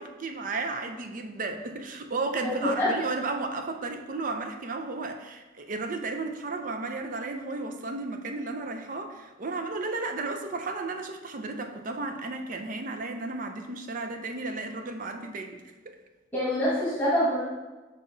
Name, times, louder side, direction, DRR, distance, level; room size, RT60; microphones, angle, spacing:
voice 1, 0.0-16.0, right 3 dB, 40° right, 6 dB, 0.4 m, -34 dB
voice 2, 2.4-2.9 16.3-17.4, equal, 10° left, -9 dB, 1.3 m, -25 dB
5.6 x 4.9 x 3.8 m, 1.2 s
head